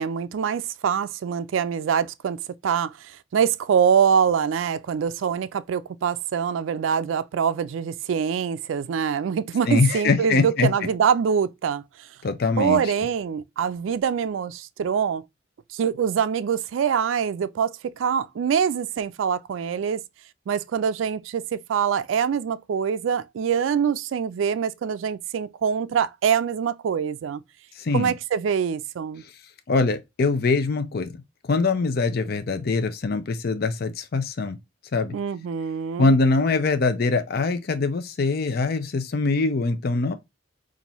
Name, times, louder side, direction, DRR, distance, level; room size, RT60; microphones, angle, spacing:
voice 1, 0.0-11.8 12.6-15.2 15.7-20.0 20.5-27.4 27.9-29.2 35.1-36.1, right 7 dB, 80° right, 0.3 m, -24 dB
voice 2, 9.7-10.7 12.2-12.8 27.8-28.1 29.7-34.6 34.9-35.2 36.0-40.1, left 3 dB, 55° left, 0.5 m, -23 dB
5.4 x 2.5 x 2.9 m
head